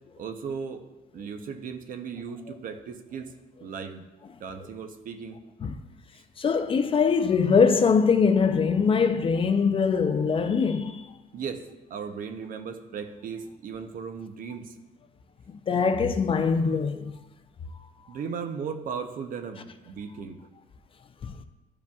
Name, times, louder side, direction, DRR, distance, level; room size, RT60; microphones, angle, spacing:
voice 1, 0.2-0.8 1.1-3.3 3.6-4.0 4.4-5.4 11.3-14.7 18.1-20.4, right 6 dB, 55° right, 0.7 m, -36 dB
voice 2, 6.4-11.0 15.5-17.1 21.2-21.3, left 5 dB, 30° left, 0.4 m, -22 dB
12.0 x 4.9 x 2.4 m
cardioid pair, 110°, 17 cm